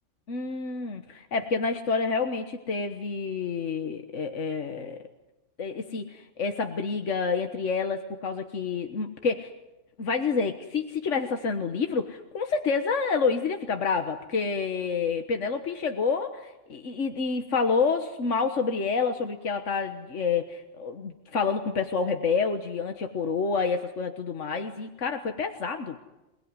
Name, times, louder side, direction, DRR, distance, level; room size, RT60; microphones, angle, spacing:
voice 1, 0.3-5.0 5.6-6.0 6.4-9.5 10.0-26.0, left 5 dB, 80° left, 6 dB, 1.7 m, -28 dB
27.0 x 20.0 x 9.7 m, 1.0 s
omnidirectional pair, 1.3 m